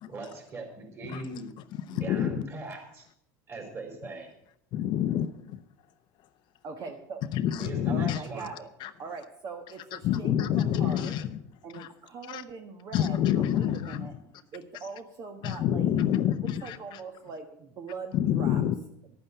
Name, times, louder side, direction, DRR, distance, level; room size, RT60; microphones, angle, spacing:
voice 1, 0.1-1.5 1.8-3.1 3.5-4.3 7.6-8.5, right 2 dB, 30° right, 4.7 m, -39 dB
voice 2, 1.9-2.4 4.7-5.6 7.3-8.2 8.8-8.9 10.0-11.4 11.7-11.9 12.3-12.4 12.9-14.1 15.4-17.0 18.1-18.7, left 10 dB, 55° left, 0.7 m, -27 dB
voice 3, 6.6-7.2 7.9-8.7 9.0-11.1 11.6-15.9 16.6-18.6, right 5 dB, 45° right, 1.3 m, -42 dB
11.0 x 9.3 x 6.8 m
supercardioid pair, 110°, 9 cm